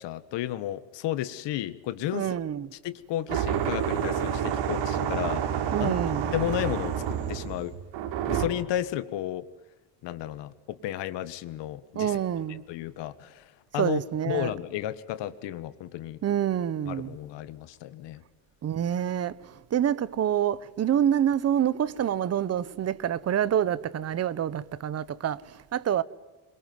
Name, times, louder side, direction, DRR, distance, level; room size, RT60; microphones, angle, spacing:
voice 1, 0.0-2.3 2.8-5.4 5.8-5.9 6.3-7.8 8.3-9.5 10.0-12.2 12.7-16.2 16.9-18.2, left 13 dB, 75° left, 1.6 m, -33 dB
voice 2, 2.1-2.7 5.7-6.3 11.9-12.6 13.8-14.5 16.2-17.2 18.6-26.0, right 10 dB, 35° right, 1.0 m, -27 dB
sound 1, 3.3-8.5, right 9 dB, 75° right, 4.3 m, -29 dB
26.5 x 23.0 x 9.5 m
cardioid pair, 160°, 43 cm